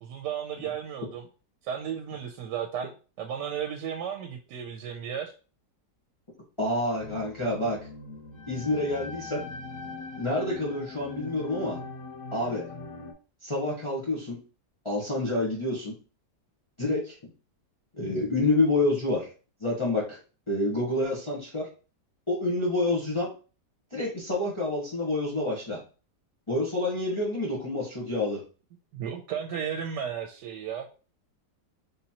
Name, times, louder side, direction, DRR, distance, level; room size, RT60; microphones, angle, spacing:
voice 1, 0.0-1.2 1.6-2.9 3.2-5.3 28.9-30.8, right 8 dB, 85° right, 4 dB, 1.2 m, -34 dB
voice 2, 6.6-7.8 8.5-9.4 10.2-11.8 12.3-12.6 13.4-14.4 14.8-15.9 16.8-17.2 18.0-19.3 19.6-20.2 20.5-21.7 22.3-23.3 23.9-25.8 26.5-28.4, left 2 dB, 20° left, -5 dB, 1.1 m, -28 dB
sound 1, 6.9-13.1, left 3 dB, 90° left, 1.5 m, -41 dB
4.1 x 3.7 x 2.9 m, 0.35 s
omnidirectional pair, 1.8 m